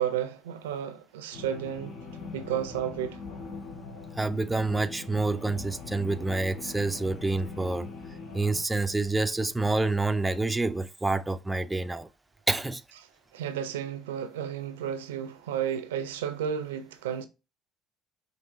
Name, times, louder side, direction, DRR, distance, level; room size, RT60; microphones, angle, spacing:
voice 1, 0.0-2.0 2.3-3.2 13.3-17.2, right 9 dB, 85° right, 0.5 m, -32 dB
sound 1, 1.3-8.6, left 4 dB, 65° left, 1.7 m, -42 dB
voice 2, 4.2-7.9 8.3-12.1 12.5-12.8, right 2 dB, 15° right, 0.4 m, -28 dB
5.2 x 2.7 x 2.7 m
hypercardioid pair, 65°, 0 cm